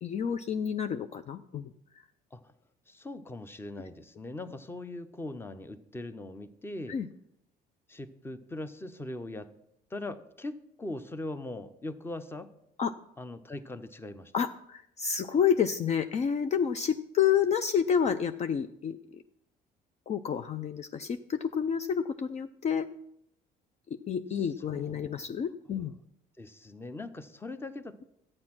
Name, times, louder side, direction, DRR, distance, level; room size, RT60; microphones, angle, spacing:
voice 1, 0.0-1.7 6.9-7.1 12.8-12.9 14.3-19.2 20.1-22.9 23.9-25.9, left 7 dB, 40° left, 10 dB, 0.5 m, -29 dB
voice 2, 2.9-7.0 7.9-9.5 9.9-12.5 13.2-14.3 24.4-25.4 26.4-28.0, left 2 dB, 15° left, 12 dB, 0.8 m, -41 dB
12.0 x 8.7 x 6.0 m, 0.77 s
cardioid pair, 110°, 17 cm